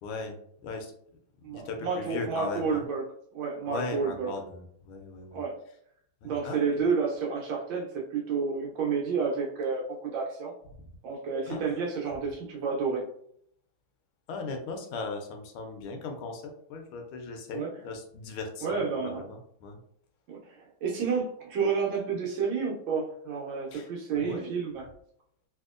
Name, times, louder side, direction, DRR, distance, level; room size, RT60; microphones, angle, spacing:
voice 1, 0.0-0.9 1.4-2.9 3.7-5.4 6.2-6.9 11.4-11.8 14.3-19.8 23.7-23.9 24.2-24.5, left 3 dB, 90° left, 4 dB, 1.6 m, -38 dB
voice 2, 1.4-3.0 3.3-4.3 5.3-5.6 6.2-10.5 11.0-13.0 17.5-17.7 18.6-19.2 20.3-24.8, right 5 dB, 75° right, -1 dB, 1.4 m, -30 dB
3.5 x 2.8 x 2.4 m, 0.67 s
omnidirectional pair, 2.3 m